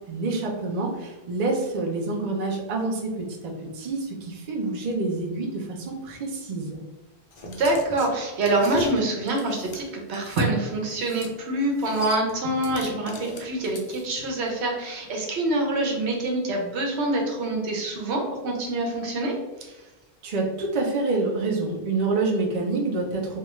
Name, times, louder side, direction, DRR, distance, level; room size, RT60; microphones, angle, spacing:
voice 1, 0.1-3.1 3.4-6.8 20.2-23.4, right 3 dB, 45° right, 0 dB, 0.6 m, -27 dB
sound 1, 7.3-10.5 10.9-11.3 11.6-14.2, left 3 dB, 45° left, 0.5 m, -40 dB
voice 2, 7.4-19.4 19.6-19.7, right 2 dB, 80° right, 0 dB, 1.0 m, -26 dB
3.3 x 2.3 x 3.0 m, 1.1 s
omnidirectional pair, 1.1 m